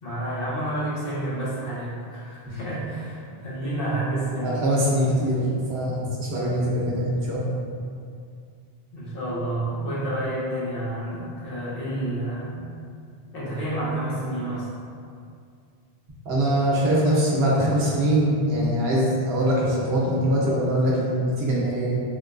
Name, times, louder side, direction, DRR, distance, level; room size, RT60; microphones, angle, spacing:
voice 1, 0.0-4.6 8.9-12.7 13.3-14.8, right 1 dB, 65° left, -9 dB, 1.0 m, -29 dB
voice 2, 4.4-7.6 16.2-22.0, equal, 70° right, -6 dB, 1.0 m, -23 dB
3.8 x 2.2 x 2.4 m, 2.3 s
omnidirectional pair, 1.1 m